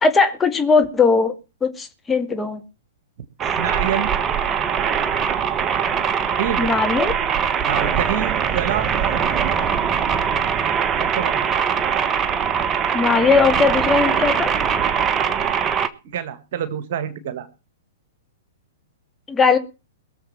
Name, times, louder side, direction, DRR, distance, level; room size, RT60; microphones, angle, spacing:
voice 1, 0.0-1.3 1.6-2.6 6.6-7.1 12.9-14.5 19.3-19.6, left 4 dB, 15° left, 7 dB, 2.1 m, -18 dB
sound 1, 3.4-15.9, right 7 dB, 25° right, 1.3 m, -21 dB
voice 2, 3.6-4.1 6.4-6.7 7.6-8.9 11.0-11.5 16.0-17.5, right 9 dB, 55° right, 11 dB, 1.9 m, -27 dB
22.0 x 7.3 x 5.8 m, 0.32 s
figure-of-eight pair, 110°, 0 cm